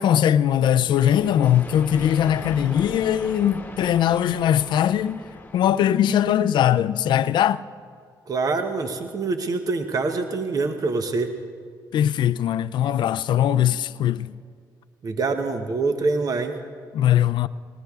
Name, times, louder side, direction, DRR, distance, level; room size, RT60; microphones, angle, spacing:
voice 1, 0.0-5.2 5.5-7.6 11.9-14.3 16.9-17.5, left 10 dB, 70° left, 0.3 m, -20 dB
sound 1, 0.9-6.6, left 2 dB, 20° left, 1.2 m, -39 dB
voice 2, 8.3-11.3 15.0-16.5, right 3 dB, 45° right, 0.9 m, -25 dB
19.5 x 19.5 x 2.4 m
cardioid pair, 75°, 8 cm